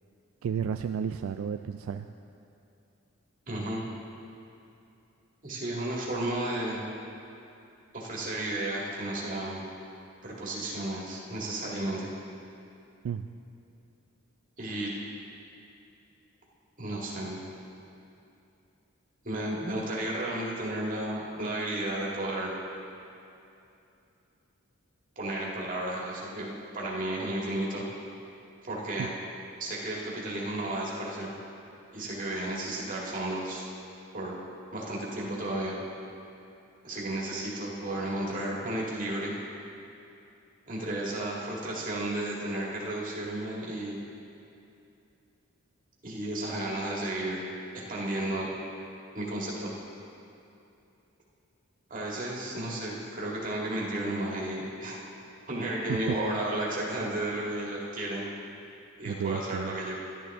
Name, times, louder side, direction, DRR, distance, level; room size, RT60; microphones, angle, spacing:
voice 1, 0.4-2.1 13.0-13.2 55.9-56.0 59.1-59.7, right 7 dB, 75° right, 8 dB, 0.3 m, -32 dB
voice 2, 3.5-3.8 5.4-6.8 7.9-9.6 10.2-12.1 14.6-14.9 16.8-17.4 19.2-22.5 25.2-26.5 26.7-27.9 28.7-29.1 29.6-31.3 31.9-33.7 34.1-34.4 34.7-35.7 36.8-39.3 40.7-44.0 46.0-47.5 47.7-48.5 49.1-49.7 51.9-55.0 55.5-58.3 59.0-60.0, right 1 dB, 40° right, -4 dB, 1.9 m, -33 dB
12.0 x 12.0 x 3.6 m, 2.7 s
head